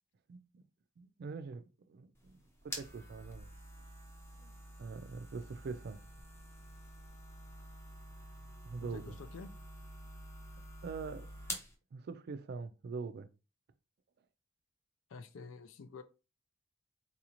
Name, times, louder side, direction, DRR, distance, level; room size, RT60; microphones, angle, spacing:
voice 1, 0.3-0.6 1.0-3.5 4.4-4.5 4.8-6.0 8.6-9.2 10.8-11.6 11.9-13.3, right 4 dB, 50° right, 0.3 m, -44 dB
sound 1, 2.1-11.7, equal, 15° left, 0.6 m, -48 dB
voice 2, 8.8-9.5 15.1-16.0, left 4 dB, 70° left, 0.4 m, -49 dB
4.0 x 2.5 x 2.9 m
head